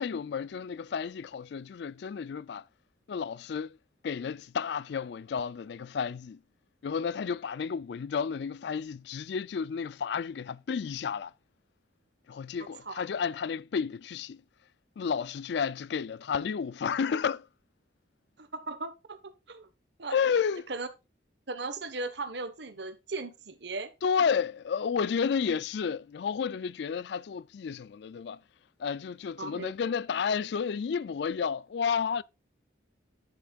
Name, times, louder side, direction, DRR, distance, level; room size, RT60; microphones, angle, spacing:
voice 1, 0.0-2.6 3.1-3.8 4.0-6.4 6.8-11.3 12.3-14.4 15.0-17.5 20.1-20.7 24.0-28.4 28.8-32.2, left 6 dB, 60° left, 0.3 m, -31 dB
voice 2, 18.4-19.2 19.5-19.7 20.0-20.2 20.7-20.9 21.5-23.9 29.4-29.7, right 3 dB, 65° right, 1.2 m, -37 dB
9.5 x 8.1 x 2.4 m
head